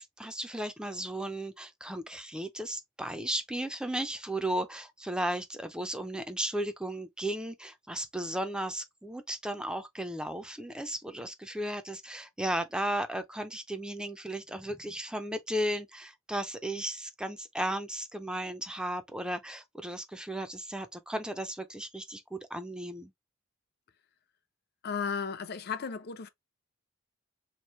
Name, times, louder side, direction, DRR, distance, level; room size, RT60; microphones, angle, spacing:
voice 1, 0.0-23.1, right 1 dB, 5° right, 0.4 m, -35 dB
voice 2, 24.8-26.3, left 6 dB, 50° left, 0.5 m, -34 dB
3.0 x 2.6 x 4.2 m
head